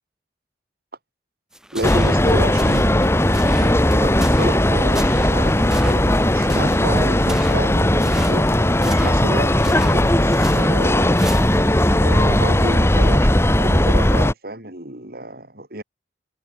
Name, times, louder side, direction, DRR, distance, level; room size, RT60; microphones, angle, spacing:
sound 1, 1.5-11.8, equal, 5° right, 1.8 m, -34 dB
voice 1, 1.7-11.2 12.0-15.8, right 1 dB, 60° right, 4.6 m, -30 dB
sound 2, 1.8-14.3, left 1 dB, 15° left, 1.6 m, -17 dB
head